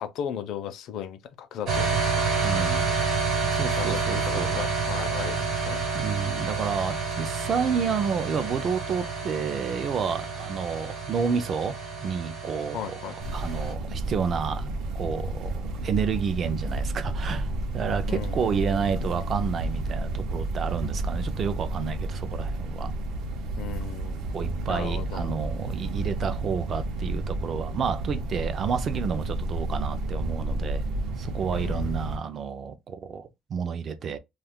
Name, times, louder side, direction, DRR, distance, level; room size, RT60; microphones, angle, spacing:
voice 1, 0.0-2.4 3.8-5.8 12.7-13.2 18.1-18.6 23.6-24.3 24.7-25.3 31.5-32.0, left 9 dB, 60° left, 0.5 m, -36 dB
sound 1, 1.7-13.7, right 4 dB, 50° right, 1.0 m, -29 dB
voice 2, 2.4-2.9 3.5-4.6 5.9-22.9 24.3-30.9 31.2-34.2, right 6 dB, 35° right, 0.4 m, -30 dB
sound 2, 13.2-32.2, right 2 dB, 70° right, 0.6 m, -31 dB
2.3 x 2.3 x 3.5 m
cardioid pair, 170°, 0 cm